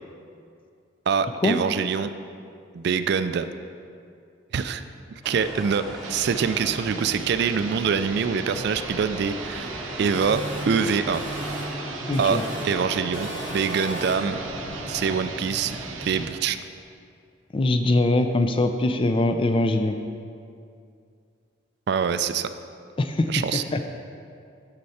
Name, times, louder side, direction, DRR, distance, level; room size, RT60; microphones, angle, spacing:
voice 1, 1.1-2.1 2.7-3.5 4.5-4.8 5.1-9.7 10.0-11.2 12.2-14.4 14.9-16.6 21.9-22.5 23.3-23.6, right 6 dB, 55° right, 11 dB, 0.3 m, -25 dB
sound 1, 5.2-16.4, equal, ahead, 1.2 m, -37 dB
sound 2, 5.9-16.3, right 5 dB, 85° right, 0.7 m, -38 dB
sound 3, 10.1-11.9 12.1-12.8 13.1-14.4, equal, 70° left, 1.2 m, -37 dB
voice 2, 12.1-12.4 17.5-20.0 23.0-23.9, left 2 dB, 25° left, 7 dB, 0.4 m, -22 dB
9.7 x 6.6 x 4.2 m, 2.4 s
head